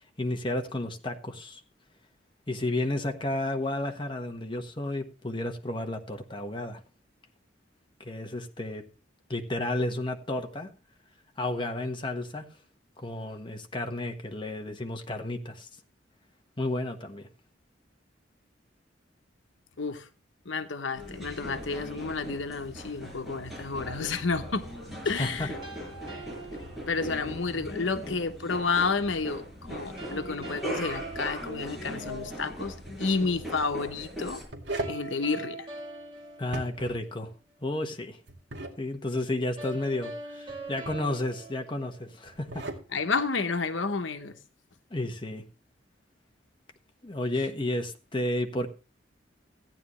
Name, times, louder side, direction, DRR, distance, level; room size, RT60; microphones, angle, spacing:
voice 1, 0.2-1.6 2.5-6.8 8.0-8.8 9.3-10.7 11.4-12.5 13.0-15.7 16.6-17.3 25.1-25.5 36.4-37.3 37.6-38.2 38.8-42.7 44.9-45.4 47.0-48.7, left 1 dB, 25° left, 1.3 m, -32 dB
voice 2, 19.8-20.1 20.4-24.6 25.0-25.6 26.8-34.4 34.9-35.7 42.9-44.4, left 4 dB, 90° left, 1.0 m, -30 dB
sound 1, 20.9-34.4, equal, ahead, 5.3 m, -39 dB
sound 2, 25.2-27.3 30.0-32.4 34.8-37.3 39.6-42.4, right 3 dB, 30° right, 2.9 m, -43 dB
sound 3, 32.7-33.0 34.2-35.0 36.4-37.0 38.3-38.8 40.5-41.1 42.2-42.9, right 1 dB, 65° right, 2.2 m, -37 dB
14.5 x 9.9 x 3.1 m
head